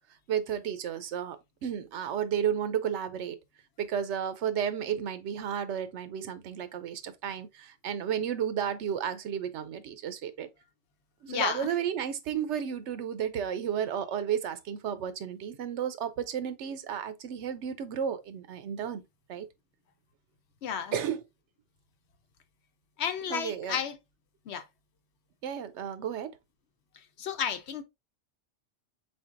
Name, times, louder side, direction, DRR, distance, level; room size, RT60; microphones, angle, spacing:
voice 1, 0.3-3.4 3.8-10.5 11.2-19.0 19.3-19.5 20.9-21.2 23.3-23.8 25.4-26.3, right 8 dB, 80° right, 0.9 m, -32 dB
voice 2, 11.3-11.7 20.6-20.9 23.0-24.0 24.5-24.6 27.2-27.8, left 8 dB, 75° left, 0.9 m, -32 dB
4.3 x 4.0 x 2.4 m
omnidirectional pair, 1.2 m